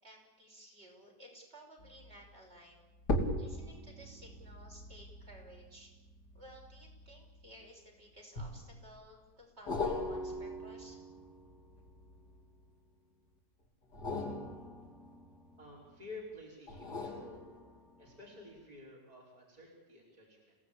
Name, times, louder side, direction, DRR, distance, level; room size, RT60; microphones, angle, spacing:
voice 1, 0.0-2.8 3.4-5.9 6.3-11.0, right 1 dB, 35° right, -1 dB, 6.3 m, -56 dB
sound 1, 1.8-2.1 3.0-7.7 8.4-9.0 9.7-12.6 13.8-15.9 16.7-18.1 18.6-18.7, left 1 dB, 65° left, 3.6 m, -40 dB
voice 2, 15.6-17.4 18.0-20.6, left 2 dB, 20° right, -4 dB, 5.1 m, -51 dB
28.5 x 18.0 x 8.7 m, 1.1 s
omnidirectional pair, 1.9 m